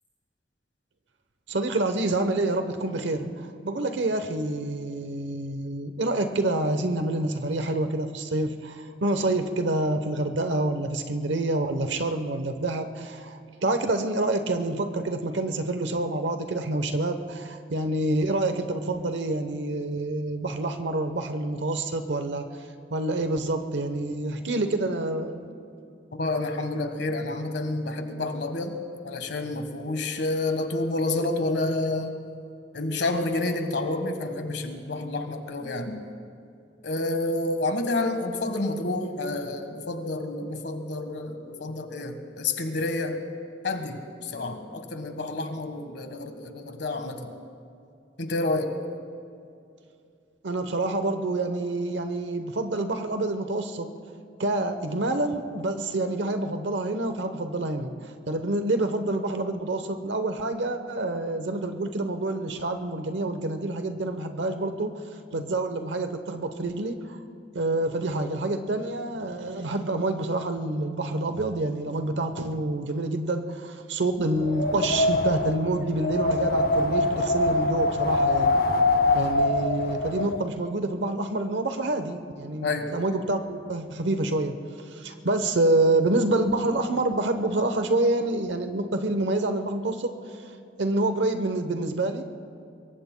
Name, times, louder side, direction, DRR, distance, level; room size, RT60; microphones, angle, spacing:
voice 1, 1.5-22.4 22.9-25.5 50.4-53.9 54.4-57.9 58.3-64.9 65.3-67.2 67.5-78.6 79.1-84.6 84.9-90.1 90.8-92.2, right 2 dB, 80° right, 7 dB, 0.9 m, -27 dB
voice 2, 26.1-32.2 32.7-36.0 36.8-43.2 43.6-47.3 48.2-48.8 65.3-65.4 82.6-83.0, left 2 dB, 70° left, 6 dB, 1.4 m, -29 dB
Wind, 74.4-80.4, left 2 dB, 50° left, 0.7 m, -24 dB
25.0 x 23.0 x 2.2 m, 2.5 s
head